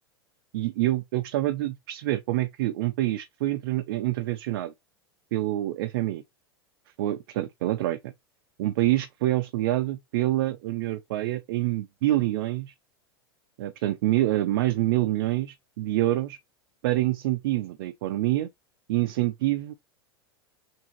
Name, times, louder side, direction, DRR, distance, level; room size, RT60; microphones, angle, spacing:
voice 1, 0.5-4.7 5.3-6.2 7.0-8.1 8.6-12.7 13.6-16.4 16.8-18.5 18.9-19.7, right 16 dB, 65° right, 0.4 m, -26 dB
3.6 x 2.6 x 2.9 m
hypercardioid pair, 95°, 13 cm